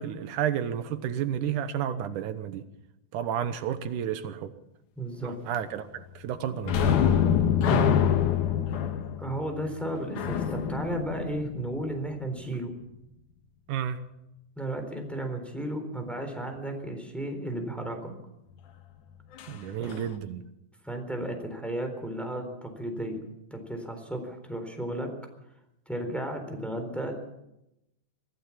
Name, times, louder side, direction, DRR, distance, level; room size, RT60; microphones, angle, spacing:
voice 1, 0.0-2.6 3.1-4.5 5.2-7.2 13.7-14.0 19.5-20.4, right 9 dB, 85° right, 11 dB, 2.6 m, -31 dB
voice 2, 5.0-5.3 7.6-7.9 9.2-12.7 14.6-18.1 19.8-20.0 20.8-23.2 23.5-25.1 25.9-27.1, right 1 dB, ahead, 5 dB, 3.7 m, -34 dB
sound 1, 6.6-12.0 19.4-19.5 19.9-20.1, left 8 dB, 80° left, 2.8 m, -25 dB
24.0 x 15.5 x 7.3 m, 0.87 s
omnidirectional pair, 3.5 m